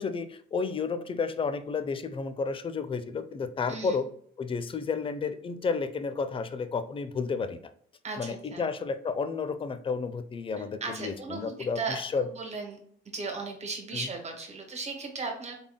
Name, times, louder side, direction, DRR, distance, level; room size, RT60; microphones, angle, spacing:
voice 1, 0.0-4.1 4.4-7.6 8.2-12.3 13.9-14.1, left 5 dB, 25° left, 11 dB, 0.4 m, -31 dB
voice 2, 3.7-4.0 8.0-8.6 10.8-12.8 13.1-15.5, right 4 dB, 35° right, 2 dB, 1.2 m, -36 dB
3.6 x 3.5 x 2.2 m, 0.62 s
cardioid pair, 90°, 20 cm